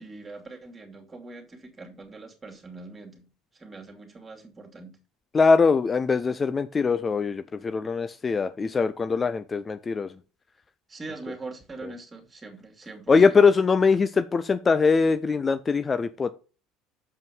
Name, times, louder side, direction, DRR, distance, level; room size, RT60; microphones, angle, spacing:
voice 1, 0.0-3.3 3.5-5.0 10.9-13.4, right 3 dB, 25° right, 2.7 m, -42 dB
voice 2, 5.3-10.1 13.1-16.3, left 4 dB, 30° left, 0.6 m, -22 dB
7.2 x 5.4 x 5.3 m
hypercardioid pair, 70°, 0 cm